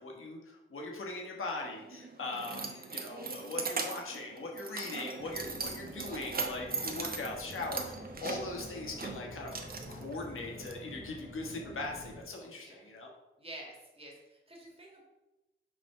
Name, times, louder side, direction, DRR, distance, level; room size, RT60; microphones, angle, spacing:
voice 1, 0.0-9.5 9.9-13.1, left 2 dB, 90° left, 0 dB, 1.3 m, -40 dB
Keys jangling, 1.6-10.7, right 4 dB, 45° right, 0.8 m, -40 dB
voice 2, 2.1-3.0 12.4-12.9 13.4-15.0, right 1 dB, 30° right, -1 dB, 1.8 m, -51 dB
sound 1, 5.2-12.2, equal, 65° right, 1.4 m, -48 dB
6.1 x 3.5 x 5.6 m, 1.0 s
wide cardioid pair, 110°, 21 cm